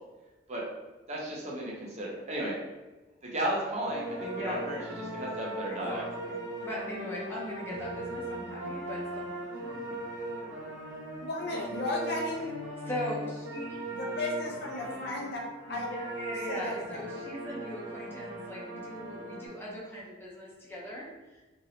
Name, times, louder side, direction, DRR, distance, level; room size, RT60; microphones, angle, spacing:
voice 1, 1.1-2.6 3.2-6.0, right 1 dB, 35° right, -3 dB, 0.6 m, -34 dB
sound 1, 3.8-19.5, right 1 dB, 80° right, 0.9 m, -39 dB
voice 2, 4.2-4.7 5.7-9.3 12.9-13.8 15.7-21.4, left 1 dB, 10° left, -5 dB, 0.6 m, -40 dB
voice 3, 11.2-12.5 13.9-15.9 16.5-17.1, left 2 dB, 55° left, -2 dB, 0.5 m, -34 dB
3.0 x 2.7 x 2.7 m, 1.2 s
head